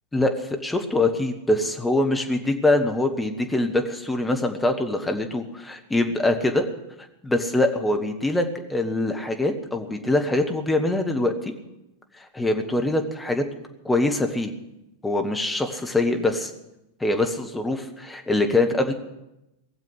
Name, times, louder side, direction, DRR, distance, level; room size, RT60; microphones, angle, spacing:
voice 1, 0.1-6.7 7.2-8.4 8.7-11.5 12.3-13.4 13.8-14.5 15.0-16.5 17.0-18.9, left 2 dB, 10° left, 4 dB, 1.5 m, -23 dB
18.5 x 7.5 x 9.7 m, 0.92 s
figure-of-eight pair, 90°, 0 cm